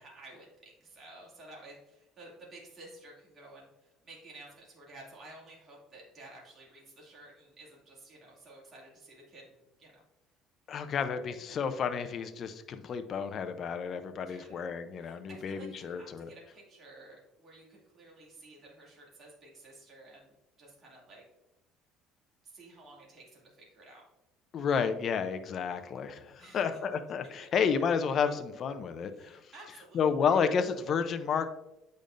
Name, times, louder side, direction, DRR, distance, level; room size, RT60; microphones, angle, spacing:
voice 1, 0.0-10.0 10.9-11.0 14.3-14.6 15.0-21.2 22.4-24.0 26.4-26.6 29.1-30.4, right 2 dB, 35° right, -4 dB, 2.4 m, -53 dB
voice 2, 10.7-16.3 24.5-29.4 29.9-31.4, left 6 dB, 45° left, 8 dB, 0.5 m, -31 dB
8.5 x 5.2 x 2.5 m, 0.95 s
cardioid pair, 130°, 0 cm